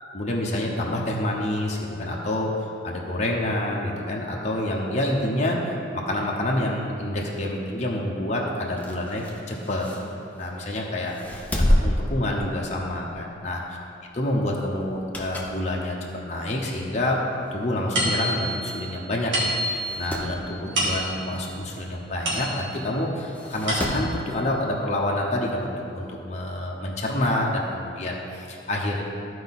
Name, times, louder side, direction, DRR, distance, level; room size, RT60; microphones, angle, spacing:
voice 1, 0.1-5.7 5.9-9.9 10.3-11.3 11.8-13.6 14.2-16.0 16.2-17.2 17.5-29.0, left 1 dB, 35° left, -2 dB, 0.9 m, -27 dB
sound 1, 8.6-10.6 11.1-13.0 13.3-13.5 14.8-15.6 16.1-16.2 17.1-17.2 17.4-17.5 17.7-17.8 18.7-18.9 19.2-19.3 19.7-20.3 22.2-22.3 23.3-24.1 25.4-25.5, equal, 10° left, 0.7 m, -28 dB
sound 2, 17.9-22.9 23.4-24.3, right 1 dB, 80° right, 2.2 m, -29 dB
14.0 x 4.7 x 4.1 m, 2.8 s
head